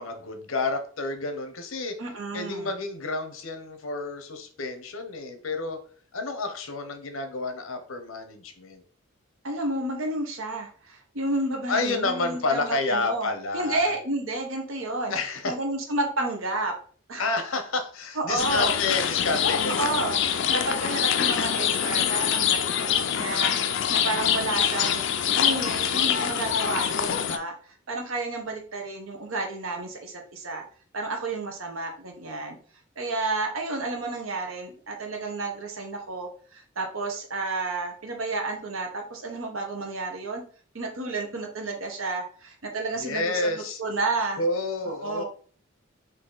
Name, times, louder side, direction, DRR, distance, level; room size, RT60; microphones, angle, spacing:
voice 1, 0.0-2.0 2.3-5.8 6.1-8.8 11.7-13.9 15.1-15.6 17.2-20.1 43.0-43.8 44.4-45.2, left 3 dB, 85° left, 7 dB, 0.8 m, -29 dB
voice 2, 2.0-2.7 9.4-15.1 15.4-16.7 17.1-17.3 18.2-18.8 19.8-30.6 30.9-32.6 33.0-40.4 40.7-44.4 44.8-45.2, right 2 dB, 80° right, 3 dB, 1.0 m, -31 dB
sound 1, 18.4-27.4, left 8 dB, 60° left, 0.4 m, -25 dB
4.1 x 2.7 x 3.9 m, 0.44 s
head